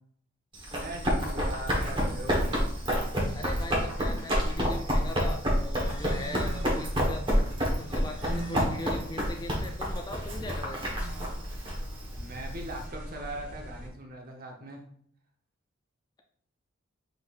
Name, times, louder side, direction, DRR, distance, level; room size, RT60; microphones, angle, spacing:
Run, 0.5-12.8, equal, 25° right, 1.2 m, -29 dB
voice 1, 0.7-2.6 12.2-14.8, right 1 dB, 45° right, 1 dB, 0.9 m, -40 dB
voice 2, 3.3-10.9, left 2 dB, 20° left, 4 dB, 0.4 m, -40 dB
sound 1, 5.8-13.9, right 1 dB, 5° right, 1.6 m, -41 dB
5.0 x 4.0 x 2.5 m, 0.64 s
head